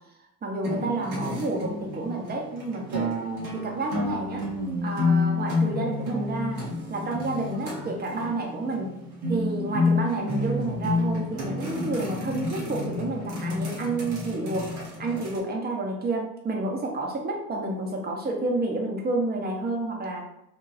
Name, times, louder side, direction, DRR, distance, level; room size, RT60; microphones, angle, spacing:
voice 1, 0.4-3.1 3.5-4.5 4.8-6.6 6.9-9.0 9.3-14.7 15.0-20.2, right 2 dB, 20° right, 1 dB, 0.7 m, -30 dB
sound 1, 0.6-15.4, left 2 dB, 80° right, 0.9 m, -29 dB
3.0 x 2.2 x 2.4 m, 0.81 s
hypercardioid pair, 60°, 44 cm